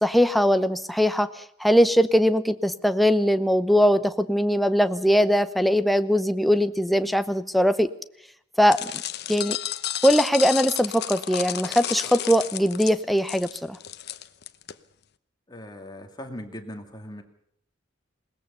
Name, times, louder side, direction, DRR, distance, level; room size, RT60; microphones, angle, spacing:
voice 1, 0.0-7.9 8.6-9.0 9.3-9.6 10.0-13.8, equal, ahead, 11 dB, 0.8 m, -21 dB
sound 1, 8.7-14.7, left 12 dB, 55° left, 0.9 m, -32 dB
voice 2, 15.5-17.2, left 1 dB, 20° left, 4 dB, 2.4 m, -39 dB
21.0 x 18.5 x 6.9 m, 0.69 s
head